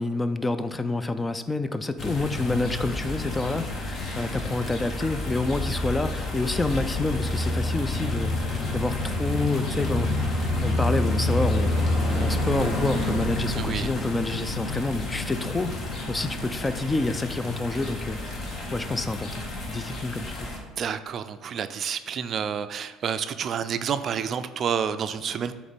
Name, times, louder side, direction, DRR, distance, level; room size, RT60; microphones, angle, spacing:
voice 1, 0.0-10.3 10.6-11.7 12.1-20.5, left 2 dB, 15° left, 11 dB, 0.4 m, -28 dB
sound 1, 2.0-20.6, left 2 dB, 45° left, 1.4 m, -29 dB
voice 2, 13.6-13.9 20.8-25.5, right 7 dB, 50° right, 11 dB, 0.4 m, -29 dB
7.9 x 3.1 x 5.2 m, 1.3 s
supercardioid pair, 80°, 0 cm